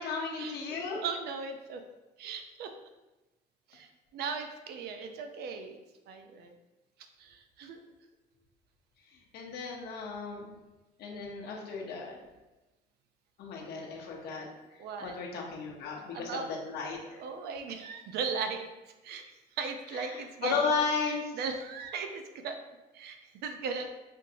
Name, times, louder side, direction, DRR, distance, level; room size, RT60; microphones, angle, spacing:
voice 1, 0.0-1.0 9.3-10.5 11.0-12.2 13.4-14.5 14.7-17.2 19.9-21.3, left 4 dB, 75° left, -1 dB, 0.9 m, -34 dB
voice 2, 1.0-1.8 2.2-2.7 3.7-5.8 6.1-6.5 7.2-7.8 14.8-15.2 16.1-16.5 17.1-18.7 19.0-19.2 19.6-20.5 21.1-22.6 22.9-23.9, right 5 dB, 70° right, 6 dB, 0.5 m, -37 dB
4.4 x 2.7 x 2.6 m, 1.1 s
cardioid pair, 110°, 17 cm